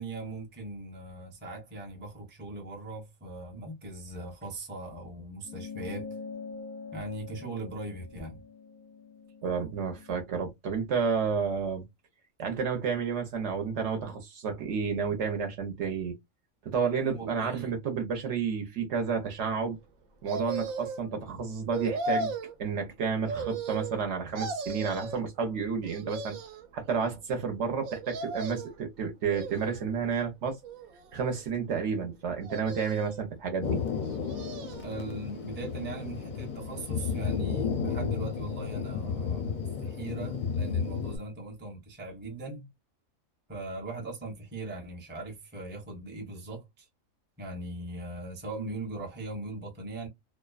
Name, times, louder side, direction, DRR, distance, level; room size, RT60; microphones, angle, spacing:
voice 1, 0.0-6.1 6.9-8.4 17.1-17.8 34.8-42.7 43.5-46.9 47.4-50.1, right 2 dB, 15° right, 0.5 m, -39 dB
sound 1, 5.4-10.2, left 5 dB, 90° left, 1.0 m, -44 dB
voice 2, 9.4-11.8 12.4-16.2 16.6-19.8 20.2-22.3 22.6-26.4 26.7-30.6 31.1-33.8, right 6 dB, 65° right, 0.9 m, -31 dB
sound 2, 20.3-21.1 21.7-22.5 23.3-24.1 24.4-25.2 25.8-26.7 27.8-28.8 29.3-30.0 30.6-31.4 32.4-33.3 34.0-34.9 35.3-35.4, right 3 dB, 90° right, 1.0 m, -36 dB
Thunder, 33.6-41.2, left 6 dB, 55° left, 0.5 m, -32 dB
2.6 x 2.1 x 2.3 m
omnidirectional pair, 1.4 m